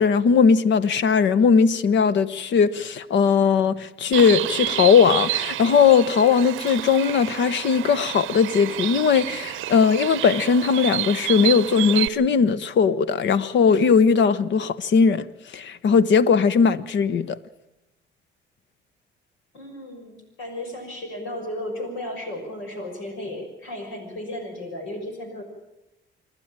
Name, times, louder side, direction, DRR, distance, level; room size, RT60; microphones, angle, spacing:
voice 1, 0.0-15.3 15.5-17.4, left 6 dB, 65° left, 1.0 m, -19 dB
Bird, 4.1-12.1, right 15 dB, 90° right, 0.8 m, -29 dB
voice 2, 19.5-25.4, left 1 dB, 90° left, 6.0 m, -34 dB
27.0 x 11.5 x 8.9 m
cardioid pair, 90°, 20 cm